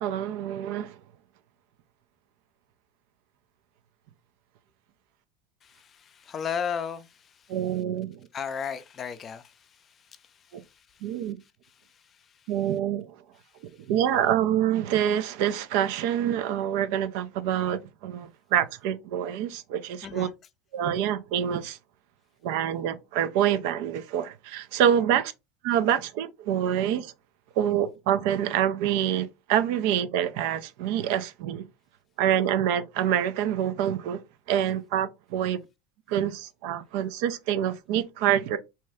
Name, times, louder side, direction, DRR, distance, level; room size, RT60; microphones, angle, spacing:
voice 1, 0.0-0.9 7.5-8.2 10.5-10.6 11.0-11.4 12.5-13.2 13.9-20.3 20.7-21.8 22.4-25.3 25.6-27.1 27.6-31.6 32.2-34.2 34.5-35.6 36.1-38.6, right 10 dB, 70° right, 0.4 m, -26 dB
voice 2, 5.6-7.5 8.3-9.7 10.2-10.3 10.6-11.1 20.0-20.3, left 7 dB, 35° left, 0.4 m, -35 dB
2.7 x 2.2 x 3.3 m
hypercardioid pair, 90°, 0 cm